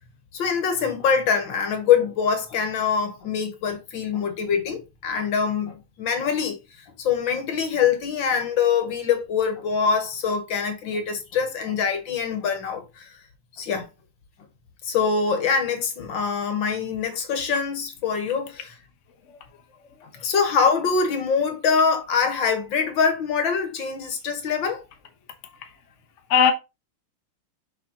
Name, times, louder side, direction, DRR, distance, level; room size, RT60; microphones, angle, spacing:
voice 1, 0.3-6.6 7.0-13.1 13.6-13.9 14.8-18.6 20.2-24.8, left 6 dB, 65° left, 1.9 m, -24 dB
voice 2, 25.4-25.8 26.3-26.5, left 7 dB, 45° left, 1.1 m, -21 dB
6.2 x 6.0 x 2.9 m
omnidirectional pair, 2.3 m